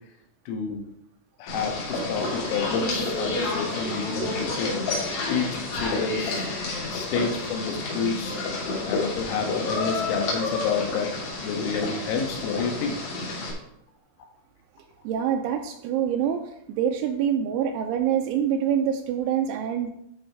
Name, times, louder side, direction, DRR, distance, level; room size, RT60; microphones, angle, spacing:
voice 1, 0.5-0.8 1.4-4.7 5.3-6.5 6.9-8.4 8.9-11.1 11.4-13.1, left 5 dB, 85° left, 3 dB, 4.0 m, -29 dB
sound 1, 1.5-13.5, left 3 dB, 70° left, 5.1 m, -29 dB
voice 2, 3.8-4.3 15.0-19.9, right 9 dB, 85° right, 4 dB, 2.9 m, -26 dB
13.0 x 4.7 x 4.7 m, 0.77 s
omnidirectional pair, 5.8 m